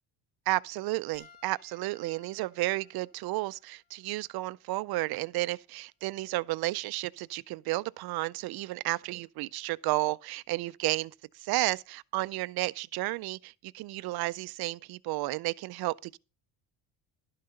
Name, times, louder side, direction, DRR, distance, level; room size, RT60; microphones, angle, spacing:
voice 1, 0.5-11.1 11.4-16.2, right 19 dB, 60° right, 0.5 m, -32 dB
Piano, 1.1-5.8 6.7-6.9 8.9-9.0, left 6 dB, 85° left, 4.5 m, -62 dB
12.0 x 5.7 x 5.1 m
cardioid pair, 155°, 43 cm